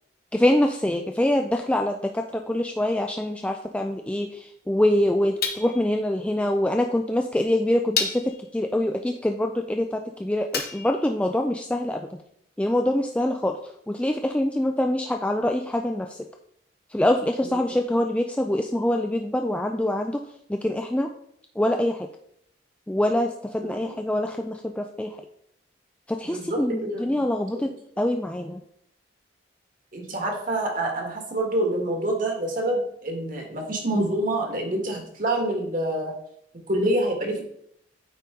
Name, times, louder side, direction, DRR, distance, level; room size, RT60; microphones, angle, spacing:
voice 1, 0.3-12.2 12.6-16.2 16.9-20.2 20.5-21.1 21.6-22.1 22.9-25.2 26.1-27.7 28.0-28.6, left 1 dB, 5° left, 4 dB, 0.3 m, -25 dB
sound 1, 5.4-6.0 7.0-7.1 8.0-8.5 10.5-11.1, left 6 dB, 55° left, 1.0 m, -30 dB
voice 2, 23.6-23.9 26.3-27.2 27.5-27.7 29.9-36.1 36.7-37.4, right 1 dB, 45° right, 1 dB, 1.6 m, -27 dB
8.9 x 4.2 x 3.7 m, 0.71 s
head